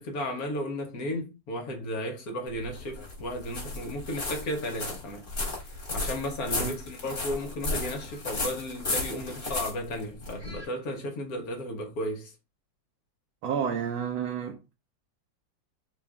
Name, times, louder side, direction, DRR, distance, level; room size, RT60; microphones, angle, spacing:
voice 1, 0.0-5.3 5.9-12.3, left 1 dB, 60° left, 1.1 m, -34 dB
sound 1, 2.5-10.6, left 2 dB, 30° left, 1.2 m, -34 dB
voice 2, 13.4-14.7, right 7 dB, 75° right, 1.2 m, -30 dB
3.4 x 2.3 x 3.4 m
omnidirectional pair, 2.0 m